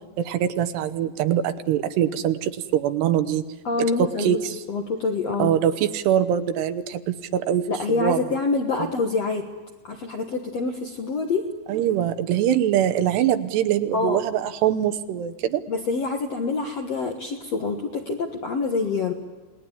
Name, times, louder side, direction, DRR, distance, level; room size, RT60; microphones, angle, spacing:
voice 1, 0.2-3.4 4.0-4.5 5.4-7.7 8.0-8.2 8.8-8.9 11.7-15.6, right 10 dB, 75° right, 10 dB, 3.0 m, -23 dB
voice 2, 3.6-4.4 4.7-5.5 7.7-9.5 9.8-11.5 13.9-14.2 15.7-19.1, left 4 dB, 60° left, 2 dB, 1.7 m, -26 dB
28.0 x 19.5 x 9.9 m, 1.3 s
omnidirectional pair, 5.0 m